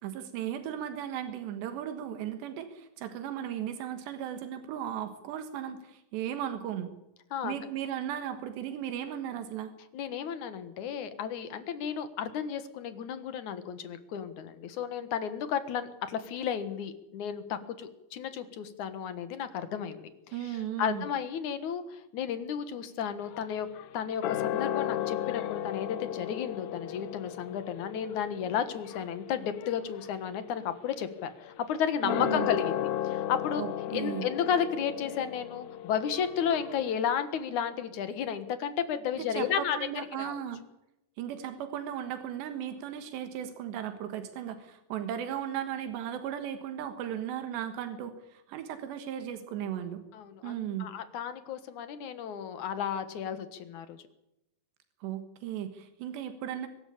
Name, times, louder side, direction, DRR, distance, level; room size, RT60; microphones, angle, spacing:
voice 1, 0.0-6.9 7.4-9.7 20.3-21.1 32.0-32.5 33.6-34.3 39.2-40.6 41.2-50.0 50.4-50.9 55.0-56.7, right 10 dB, 90° right, 9 dB, 3.7 m, -36 dB
voice 2, 9.9-20.1 20.4-23.7 23.9-33.6 33.9-39.8 40.2-40.4 50.1-54.0, left 8 dB, 60° left, 11 dB, 2.4 m, -33 dB
sound 1, 23.2-37.0, left 12 dB, 80° left, 3.1 m, -36 dB
24.0 x 12.5 x 8.6 m, 0.88 s
omnidirectional pair, 4.8 m